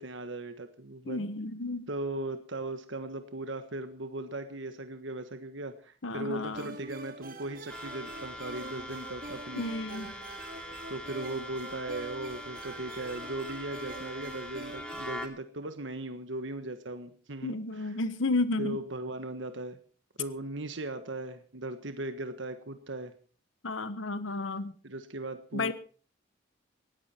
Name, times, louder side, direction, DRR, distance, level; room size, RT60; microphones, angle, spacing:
voice 1, 0.0-1.3 1.9-9.6 10.9-18.0 18.6-19.8 20.2-23.1 24.8-25.7, right 2 dB, 75° right, 8 dB, 1.5 m, -38 dB
voice 2, 1.1-1.9 6.0-6.7 9.6-10.1 17.4-18.8 23.6-24.7 25.5-25.7, left 2 dB, 85° left, 13 dB, 1.2 m, -32 dB
sound 1, 6.5-15.3, right 2 dB, 45° right, 2.0 m, -45 dB
sound 2, 7.7-15.3, left 1 dB, 5° left, 2.7 m, -43 dB
19.5 x 14.5 x 4.5 m, 0.40 s
head